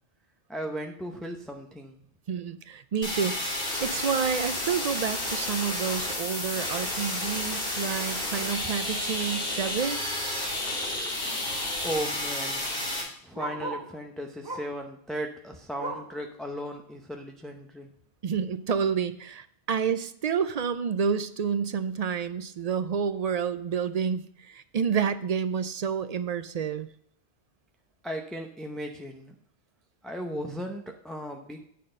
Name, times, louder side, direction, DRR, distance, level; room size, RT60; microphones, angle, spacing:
voice 1, 0.5-2.0 11.8-12.6 13.2-17.9 28.0-29.3 30.0-31.7, equal, ahead, 2 dB, 0.6 m, -36 dB
voice 2, 2.3-10.0 18.2-26.9, right 7 dB, 50° right, 12 dB, 0.5 m, -29 dB
sound 1, 3.0-13.0, left 1 dB, 70° left, 3.6 m, -31 dB
Bark, 11.8-14.0 14.4-14.8 15.2-16.2 16.7-16.8 17.2-17.3 17.9-18.0, right 2 dB, 20° right, 2.0 m, -39 dB
9.3 x 4.1 x 6.4 m, 0.65 s
omnidirectional pair, 1.1 m